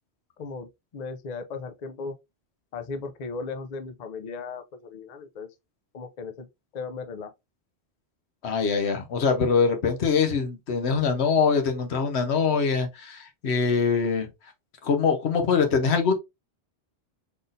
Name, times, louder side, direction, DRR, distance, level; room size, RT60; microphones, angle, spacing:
voice 1, 0.9-2.1 2.7-5.5 5.9-6.5 6.7-7.3, left 4 dB, 50° left, 0.6 m, -36 dB
voice 2, 8.4-14.3 14.8-16.1, left 5 dB, 85° left, 1.2 m, -23 dB
4.0 x 3.6 x 2.5 m
omnidirectional pair, 1.1 m